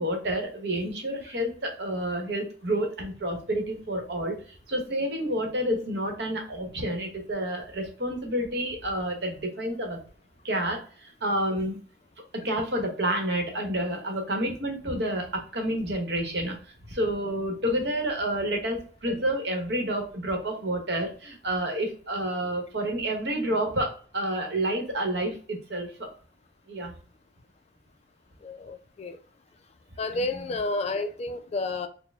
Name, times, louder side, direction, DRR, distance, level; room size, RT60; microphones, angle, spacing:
voice 1, 0.0-10.0 10.4-11.8 12.3-26.1 26.7-26.9, right 1 dB, 65° right, 1.0 m, -29 dB
voice 2, 28.4-29.2 30.0-31.9, left 2 dB, 35° left, 0.3 m, -31 dB
4.3 x 2.1 x 3.4 m
head